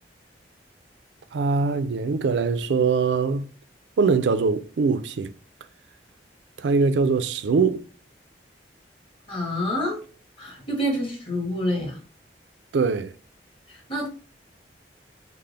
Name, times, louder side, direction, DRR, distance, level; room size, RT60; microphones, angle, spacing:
voice 1, 1.3-3.5 4.0-5.3 6.6-7.8 12.7-13.1, right 4 dB, 75° right, 0.4 m, -22 dB
voice 2, 9.3-10.0 10.4-12.0 13.7-14.1, equal, 30° left, 1.6 m, -27 dB
5.6 x 2.1 x 3.3 m
head